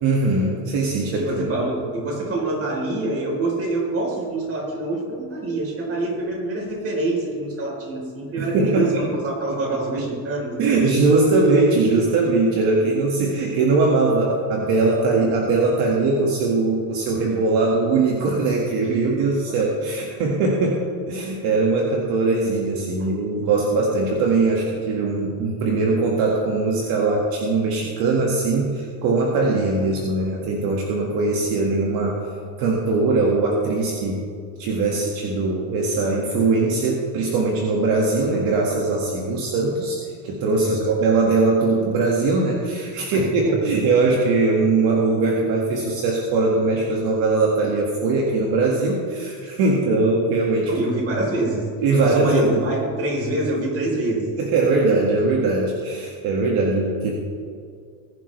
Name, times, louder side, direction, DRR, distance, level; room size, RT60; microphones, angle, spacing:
voice 1, 0.0-1.3 8.4-8.9 10.6-32.2 32.6-34.2 34.6-50.7 51.8-52.6 54.4-57.1, right 3 dB, 60° right, -1 dB, 2.0 m, -21 dB
voice 2, 1.2-10.8 19.2-19.6 23.0-23.1 40.5-40.9 43.1-43.7 50.7-51.7 52.0-54.7 55.0-55.1, right 2 dB, 35° right, -1 dB, 4.0 m, -26 dB
20.0 x 11.0 x 3.3 m, 2.3 s
cardioid pair, 155°, 42 cm